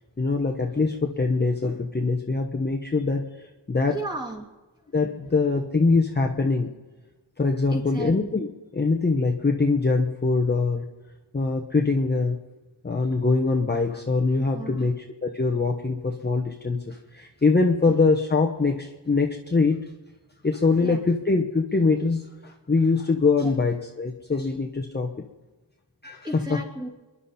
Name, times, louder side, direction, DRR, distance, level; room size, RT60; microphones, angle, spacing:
voice 1, 0.2-3.9 4.9-6.7 7.4-8.5 8.7-10.9 11.3-12.4 12.8-14.9 15.2-19.8 20.4-25.1 26.0-26.3, left 3 dB, 25° left, 1 dB, 1.1 m, -23 dB
voice 2, 3.9-4.4 7.7-8.1 14.3-14.9 20.8-21.0 23.4-23.5 26.2-26.9, right 2 dB, 10° right, -2 dB, 3.0 m, -34 dB
28.0 x 11.0 x 4.3 m, 1.2 s
wide cardioid pair, 145°, 43 cm